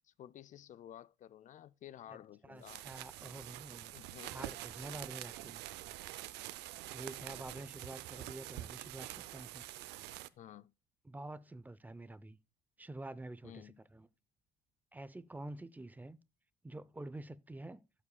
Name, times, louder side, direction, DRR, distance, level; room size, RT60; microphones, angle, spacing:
voice 1, 0.0-2.8 3.9-4.5 10.4-10.7 13.4-13.8, left 11 dB, 50° left, 0.4 m, -53 dB
voice 2, 2.4-3.9 4.3-5.6 6.9-9.6 11.0-12.4 12.8-14.1 14.9-16.2 16.6-17.8, right 2 dB, 10° right, 0.5 m, -48 dB
sound 1, 2.6-10.3, right 16 dB, 85° right, 0.5 m, -46 dB
16.0 x 7.3 x 2.2 m
cardioid pair, 110°, 17 cm